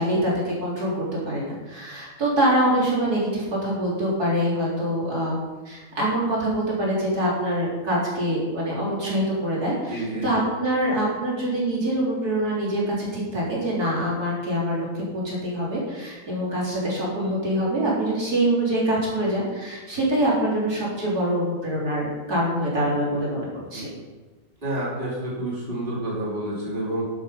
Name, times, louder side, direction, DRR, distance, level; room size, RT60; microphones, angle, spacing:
voice 1, 0.0-5.4 5.6-23.9, right 1 dB, 65° right, -5 dB, 4.3 m, -25 dB
voice 2, 9.9-10.5 23.7-23.9 24.6-27.0, right 1 dB, 30° right, -6 dB, 3.5 m, -29 dB
11.5 x 9.9 x 5.2 m, 1.2 s
omnidirectional pair, 1.8 m